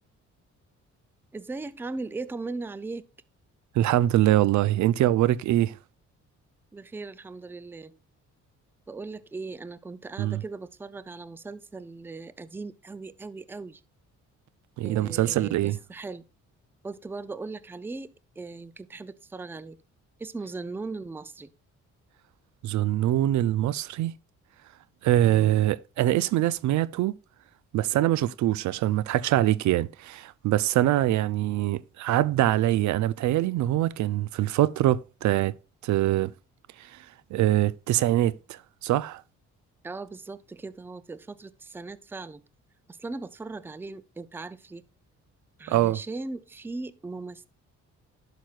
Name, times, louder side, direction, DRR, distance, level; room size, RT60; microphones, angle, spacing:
voice 1, 1.3-3.1 6.7-8.0 8.9-13.8 14.8-16.2 16.8-19.8 20.2-21.5 39.8-42.4 42.9-44.8 45.6-47.5, right 3 dB, 5° right, 0.4 m, -38 dB
voice 2, 3.7-5.8 10.2-10.4 14.8-15.8 22.6-24.1 25.0-27.2 27.7-35.5 35.8-36.3 36.8-37.1 37.3-39.2 45.7-46.0, right 14 dB, 70° right, 0.4 m, -24 dB
11.5 x 6.0 x 2.4 m
cardioid pair, 90°, 30 cm